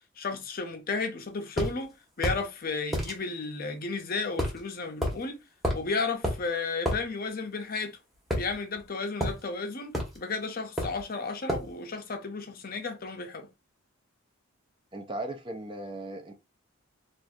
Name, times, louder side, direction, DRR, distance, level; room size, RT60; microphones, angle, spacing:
voice 1, 0.2-5.4 5.7-8.0 8.4-13.5, left 4 dB, 40° left, 0.6 m, -33 dB
sound 1, 1.6-1.7 2.2-2.4 2.9-3.1 4.4-4.6 5.0-5.2 5.6-5.9 6.2-6.4 6.8-7.0 8.3-8.8 9.2-9.4 9.9-10.2 10.8-11.0 11.5-11.7, equal, ahead, 1.0 m, -29 dB
voice 2, 14.9-16.3, right 1 dB, 20° right, 0.4 m, -37 dB
4.2 x 2.5 x 2.3 m
head